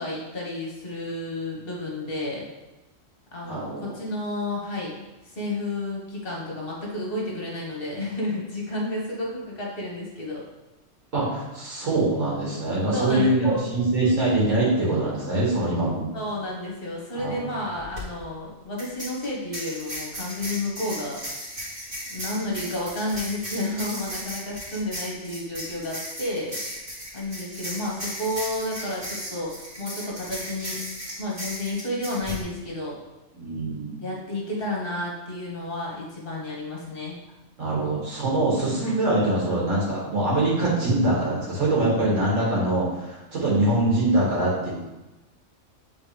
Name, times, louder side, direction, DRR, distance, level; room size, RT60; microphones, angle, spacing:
voice 1, 0.0-2.4 3.3-4.9 5.2-10.4 12.9-13.9 16.1-21.2 22.1-26.6 27.1-30.8 31.2-32.9 34.0-37.2 38.8-38.9, left 1 dB, 50° left, -3 dB, 1.6 m, -31 dB
voice 2, 3.4-3.9 11.1-16.0 17.1-17.4 33.3-33.9 37.6-44.7, right 2 dB, 85° right, -6 dB, 2.4 m, -23 dB
sound 1, 17.8-18.0 18.8-32.4, equal, 45° right, 2.4 m, -36 dB
8.5 x 4.2 x 3.4 m, 1.1 s
omnidirectional pair, 1.3 m